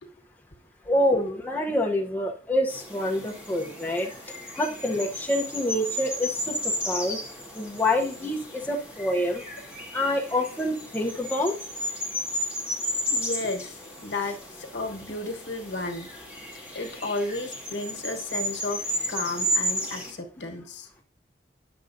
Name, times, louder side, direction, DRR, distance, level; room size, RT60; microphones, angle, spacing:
voice 1, 0.8-4.1 4.5-7.2 7.5-9.4 9.9-11.5, left 1 dB, 10° left, -1 dB, 0.8 m, -26 dB
sound 1, 2.7-20.1, equal, 10° right, 1.7 m, -33 dB
voice 2, 13.1-16.1 16.7-18.8 19.1-20.9, left 2 dB, 85° left, 3 dB, 1.3 m, -33 dB
9.9 x 6.9 x 2.6 m, 0.41 s
head